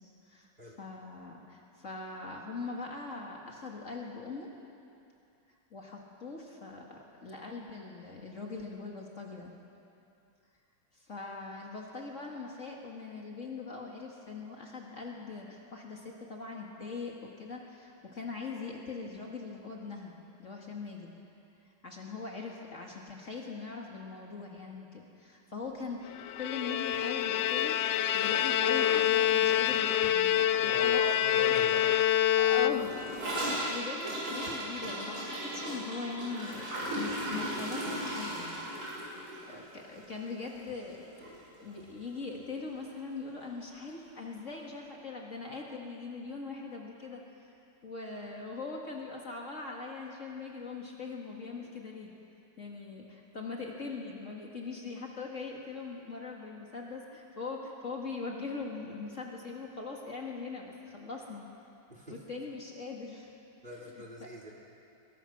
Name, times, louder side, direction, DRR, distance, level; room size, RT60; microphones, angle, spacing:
voice 1, 0.3-4.5 5.7-9.5 10.9-20.1 20.4-21.1 21.8-31.0 31.3-31.6 32.4-32.9 33.3-38.7 39.5-41.3 41.6-47.5 47.8-52.1 52.6-61.5 62.1-63.3 63.7-64.3, left 4 dB, 45° left, -1 dB, 2.2 m, -41 dB
Bowed string instrument, 26.2-33.2, left 11 dB, 80° left, 1.3 m, -27 dB
voice 2, 30.6-31.8 61.9-62.1 63.6-64.5, equal, 30° right, -2 dB, 2.9 m, -41 dB
Gurgling / Toilet flush, 32.7-41.0 41.2-41.4 41.6-42.1 42.4-42.5 42.7-42.8 43.8-43.9, right 1 dB, 60° right, 6.0 m, -37 dB
22.0 x 20.5 x 6.0 m, 2.7 s
omnidirectional pair, 1.9 m